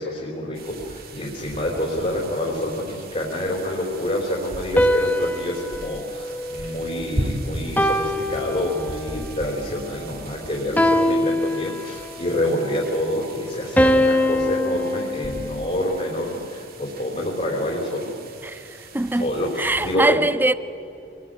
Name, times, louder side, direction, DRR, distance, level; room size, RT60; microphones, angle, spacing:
voice 1, 0.0-18.1 19.2-20.2, left 1 dB, 35° left, 3.6 m, -27 dB
sound 1, 0.5-20.0, right 1 dB, 55° right, 2.3 m, -37 dB
sound 2, 4.8-7.2 7.8-9.2 10.8-12.2 13.8-16.1, left 1 dB, 10° left, 1.2 m, -23 dB
voice 2, 18.4-19.3 19.6-20.5, right 2 dB, 10° right, 0.6 m, -22 dB
26.0 x 20.0 x 8.9 m
head